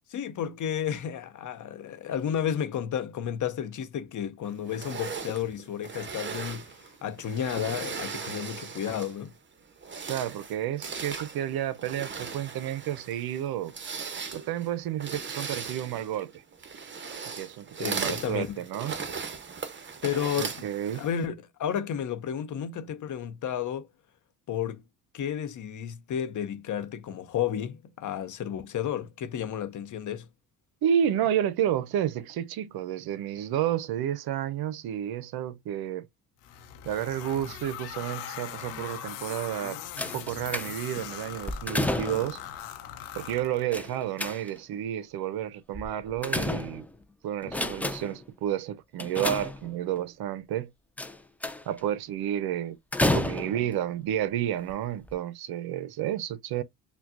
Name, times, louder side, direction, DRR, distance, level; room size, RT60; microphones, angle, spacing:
voice 1, 0.1-6.7 7.0-9.3 17.8-18.6 20.0-20.7 20.9-23.9 24.5-24.8 25.1-30.3, left 9 dB, 45° left, 0.7 m, -32 dB
sound 1, 4.7-9.3 9.7-21.3, right 5 dB, 25° right, 0.9 m, -38 dB
voice 2, 10.1-13.7 14.3-16.4 17.4-18.9 20.4-21.0 30.8-36.1 36.9-39.8 40.1-42.4 43.1-46.9 47.2-50.7 51.7-52.8 53.1-56.6, right 10 dB, 55° right, 0.6 m, -31 dB
sound 2, 36.4-44.0, left 10 dB, 90° left, 0.9 m, -41 dB
sound 3, 40.0-41.0 41.4-42.4 43.7-44.7 45.7-47.0 47.4-48.2 49.0-50.0 51.0-51.8 52.9-53.8 54.6-54.7 55.0-55.1, left 1 dB, 5° left, 0.4 m, -31 dB
5.6 x 2.2 x 2.4 m
supercardioid pair, 75°, 44 cm